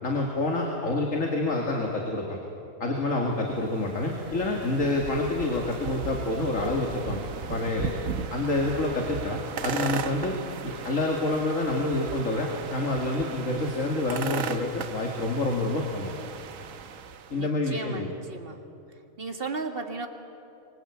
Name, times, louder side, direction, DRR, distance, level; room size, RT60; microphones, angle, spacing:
voice 1, 0.0-2.4 2.8-7.2 7.5-7.9 8.3-16.1 17.3-18.1, left 2 dB, 80° left, 0 dB, 2.7 m, -28 dB
sound 1, 3.4-17.4, right 6 dB, 85° right, 1.3 m, -37 dB
voice 2, 17.3-18.6 19.2-20.1, right 3 dB, 45° right, 5 dB, 2.0 m, -35 dB
24.5 x 23.5 x 8.5 m, 2.7 s
omnidirectional pair, 1.3 m